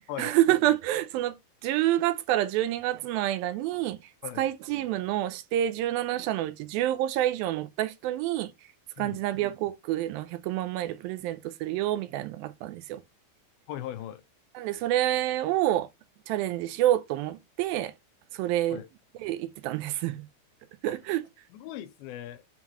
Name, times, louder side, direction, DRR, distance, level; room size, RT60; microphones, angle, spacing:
voice 1, 0.2-1.4 1.6-4.0 4.4-8.5 9.0-13.0 14.5-15.9 16.3-17.9 18.3-18.8 19.2-20.3 20.8-21.2, right 13 dB, 85° right, 2.3 m, -28 dB
voice 2, 13.7-14.2 18.7-18.9 20.9-21.0 21.5-22.4, left 11 dB, 85° left, 2.5 m, -38 dB
9.1 x 3.8 x 3.0 m
omnidirectional pair, 4.3 m